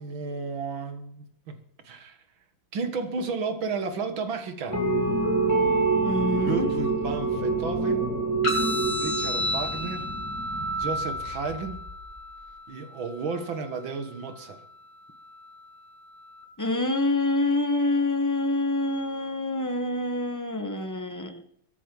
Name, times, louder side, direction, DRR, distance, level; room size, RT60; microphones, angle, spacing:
voice 1, 0.0-2.2 2.7-4.8 6.4-8.1 9.0-10.1 10.8-11.8 12.7-14.6, right 4 dB, 75° right, 2.5 m, -33 dB
sound 1, 4.7-12.2, right 3 dB, 10° right, 3.0 m, -27 dB
voice 2, 6.0-6.7 16.6-21.4, left 2 dB, 10° left, 1.3 m, -26 dB
sound 2, 8.4-16.4, left 1 dB, 75° left, 6.8 m, -33 dB
23.5 x 9.9 x 5.4 m
omnidirectional pair, 2.2 m